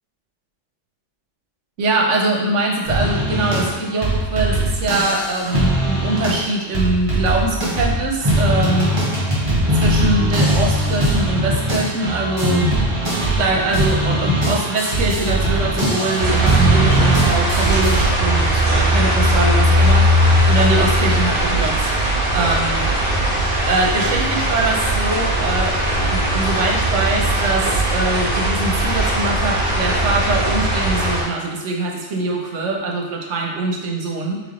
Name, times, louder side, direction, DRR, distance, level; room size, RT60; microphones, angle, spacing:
voice 1, 1.8-9.0 9.8-12.7 13.4-21.9 22.3-22.8 23.7-34.4, right 2 dB, 80° right, 0 dB, 1.1 m, -23 dB
sound 1, 2.9-3.8 4.0-6.5 6.7-18.0, right 1 dB, 30° right, 1.1 m, -20 dB
sound 2, 16.2-31.2, right 1 dB, 50° right, 1.4 m, -18 dB
3.4 x 3.3 x 3.8 m, 1.2 s
omnidirectional pair, 1.2 m